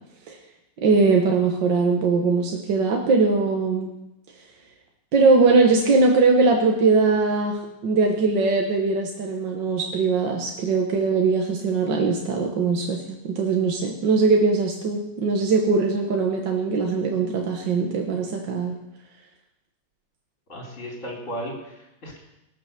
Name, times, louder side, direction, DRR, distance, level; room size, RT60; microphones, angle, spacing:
voice 1, 0.8-3.9 5.1-18.7, right 4 dB, 80° right, 1 dB, 2.0 m, -21 dB
voice 2, 20.5-22.2, equal, 40° left, -2 dB, 4.0 m, -35 dB
18.5 x 6.8 x 6.7 m, 0.89 s
omnidirectional pair, 1.9 m